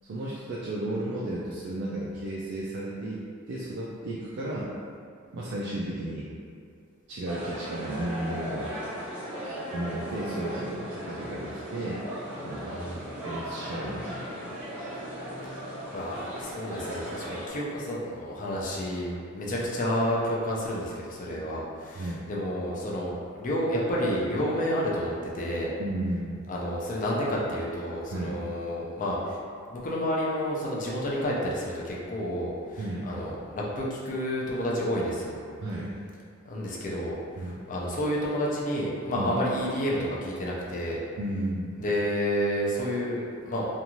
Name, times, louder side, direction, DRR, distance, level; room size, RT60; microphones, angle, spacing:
voice 1, 0.0-4.7 5.3-6.3 7.1-8.7 9.7-12.0 12.4-12.8 13.2-14.3 16.7-16.8 19.4-19.5 21.4-21.5 21.9-22.2 25.8-26.4 28.1-28.4 32.8-33.1 35.6-35.9 37.4-37.6 39.2-39.3 41.2-41.9, right 1 dB, 55° right, -6 dB, 0.3 m, -33 dB
sound 1, 7.3-17.5, equal, 10° right, 0.6 m, -37 dB
voice 2, 12.7-13.1 15.9-25.7 26.5-29.4 29.7-35.4 36.5-41.0 41.8-43.7, equal, 40° left, -5 dB, 0.5 m, -30 dB
2.6 x 2.3 x 2.9 m, 2.2 s
head